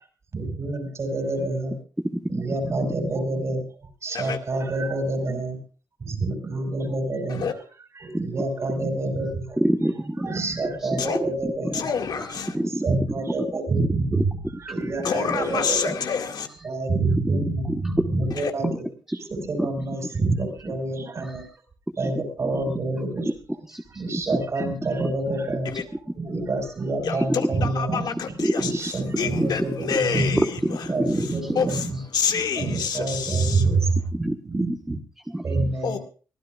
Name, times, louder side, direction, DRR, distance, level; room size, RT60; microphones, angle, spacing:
voice 1, 0.3-1.8 2.3-3.6 4.0-5.6 6.0-7.6 8.0-9.6 10.2-11.9 12.5-14.2 14.6-16.0 16.6-18.9 19.3-21.4 22.0-23.3 24.0-25.7 26.2-30.4 30.9-32.0 32.6-34.0 34.4-35.0 35.4-36.0, right 2 dB, 40° right, 5.3 m, -27 dB
voice 2, 2.1-2.6 8.1-8.2 9.6-10.3 10.8-11.7 12.2-12.9 14.1-14.2 14.7-14.9 15.3-15.4 15.9-16.0 17.2-18.1 19.1-19.3 19.6-19.7 21.2-21.5 22.0-22.1 23.7-24.3 25.5-25.6 26.3-26.4 27.4-27.5 27.9-28.0 28.4-28.8 29.4-29.6 29.9-30.0 30.4-31.2 34.1-35.4, right 1 dB, 5° right, 1.3 m, -27 dB
voice 3, 11.7-12.6 15.0-16.5 18.4-18.5 25.7-25.9 27.0-28.7 29.2-30.8 31.6-31.9 32.1-33.7 35.8-36.0, left 6 dB, 65° left, 2.0 m, -27 dB
24.0 x 16.0 x 2.4 m
wide cardioid pair, 135°, 8 cm